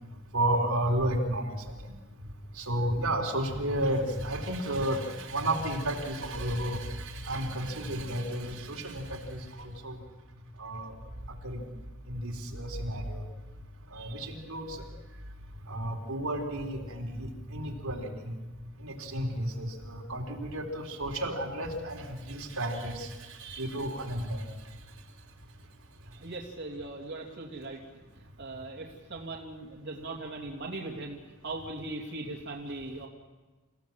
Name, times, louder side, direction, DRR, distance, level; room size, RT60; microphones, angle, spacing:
voice 1, 0.3-1.5 2.6-10.0 10.6-10.9 11.4-11.6 12.1-13.2 13.9-14.8 15.7-18.3 18.8-23.1 23.4-24.4, right 1 dB, 90° right, 0 dB, 3.9 m, -32 dB
voice 2, 26.2-27.8 28.4-33.1, right 2 dB, 55° right, -2 dB, 2.9 m, -39 dB
28.0 x 16.5 x 7.6 m, 1.3 s
head